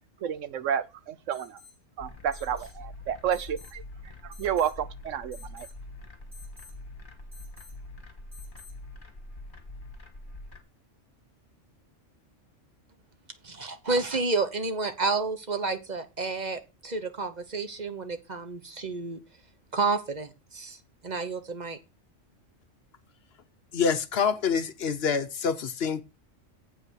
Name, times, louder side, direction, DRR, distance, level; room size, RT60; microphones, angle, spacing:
voice 1, 0.2-1.6 2.0-3.8 4.2-5.7, right 9 dB, 90° right, 1.2 m, -31 dB
Alarm, 1.3-1.8 2.3-2.8 3.3-3.8 4.3-4.8 5.3-5.8 6.3-6.8 7.3-7.8 8.3-8.8, left 4 dB, 55° right, 2.8 m, -52 dB
sound 1, 2.0-10.6, left 1 dB, 40° left, 2.0 m, -44 dB
voice 2, 13.4-19.2 19.7-20.8 21.0-21.8, right 3 dB, 35° right, 1.2 m, -30 dB
voice 3, 23.7-26.0, left 6 dB, 60° left, 1.0 m, -26 dB
8.0 x 5.3 x 6.4 m
omnidirectional pair, 1.3 m